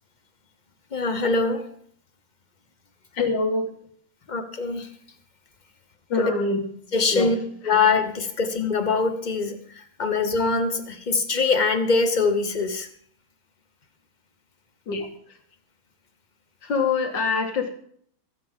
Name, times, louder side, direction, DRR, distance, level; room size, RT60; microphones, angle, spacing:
voice 1, 0.9-1.6 4.3-4.9 6.9-7.3 7.7-9.6 10.0-12.9, left 4 dB, 35° left, 8 dB, 0.7 m, -23 dB
voice 2, 3.1-3.8 6.1-6.6 7.1-7.8 14.9-15.4 16.6-17.7, left 4 dB, 65° left, 4 dB, 2.4 m, -25 dB
23.5 x 8.0 x 3.7 m, 0.62 s
omnidirectional pair, 2.2 m